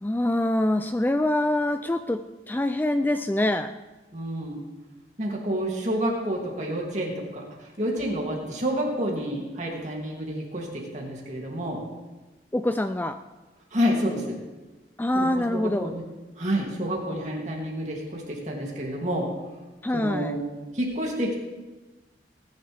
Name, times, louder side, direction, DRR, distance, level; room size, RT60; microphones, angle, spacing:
voice 1, 0.0-2.2 2.5-3.7 12.5-13.2 15.0-15.9 19.8-20.4, left 1 dB, 10° left, 9 dB, 0.3 m, -25 dB
voice 2, 4.1-4.6 5.2-7.4 7.8-11.8 13.7-14.4 15.1-16.0 16.4-19.3 19.9-20.4 20.7-21.3, equal, 40° right, -2 dB, 2.6 m, -29 dB
19.5 x 10.5 x 3.4 m, 1.2 s
head